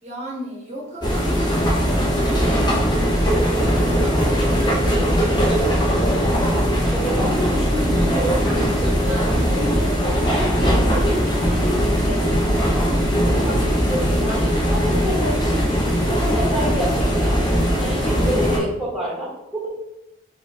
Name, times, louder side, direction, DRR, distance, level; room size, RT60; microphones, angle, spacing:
voice 1, 0.0-5.9 9.0-9.7, right 1 dB, 35° right, -2 dB, 0.8 m, -34 dB
sound 1, 1.0-18.6, equal, 25° left, 0.9 m, -20 dB
voice 2, 6.9-9.1 9.5-12.2 12.6-12.9 13.4-17.5 17.8-19.7, equal, ahead, -5 dB, 1.1 m, -28 dB
4.9 x 2.7 x 3.3 m, 0.88 s
head